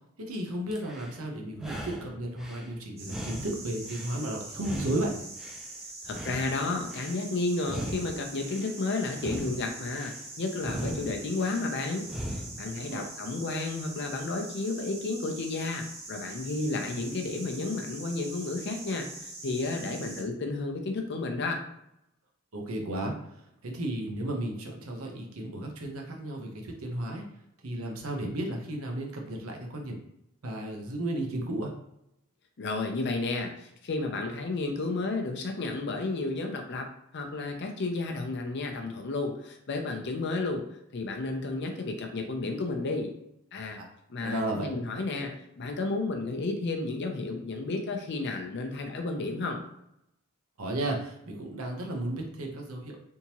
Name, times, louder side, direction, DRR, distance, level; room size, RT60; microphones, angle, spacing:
voice 1, 0.3-5.3 12.8-13.1 22.5-27.2 27.6-30.0 30.4-31.7 43.8-43.9 44.2-44.7 50.6-53.0, right 1 dB, 90° right, 1 dB, 0.8 m, -34 dB
sound 1, 0.7-1.2 1.5-2.7 3.0-4.2 4.5-5.7 6.0-7.2 7.6-8.7 9.1-10.2 10.6-11.6 12.0-12.7, equal, 5° right, 0.4 m, -39 dB
sound 2, 3.0-20.2, right 2 dB, 30° right, 0.8 m, -43 dB
voice 2, 6.0-12.0 12.6-21.6 32.6-36.9 37.1-40.6 40.9-43.1 43.5-43.8 44.1-49.6, left 3 dB, 55° left, 3 dB, 0.6 m, -32 dB
3.6 x 2.8 x 2.9 m, 0.79 s
head